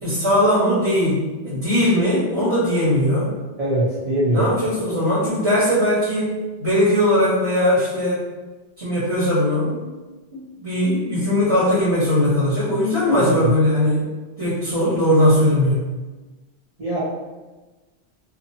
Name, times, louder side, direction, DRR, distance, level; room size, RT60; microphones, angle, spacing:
voice 1, 0.0-3.3 4.2-6.3 6.6-8.2 8.8-9.9 10.3-14.0 14.4-15.9, left 1 dB, 70° right, -13 dB, 1.5 m, -19 dB
voice 2, 3.6-4.6 13.1-13.5 16.8-17.0, right 1 dB, 40° right, -10 dB, 0.6 m, -22 dB
2.6 x 2.6 x 2.6 m, 1.2 s
omnidirectional pair, 1.1 m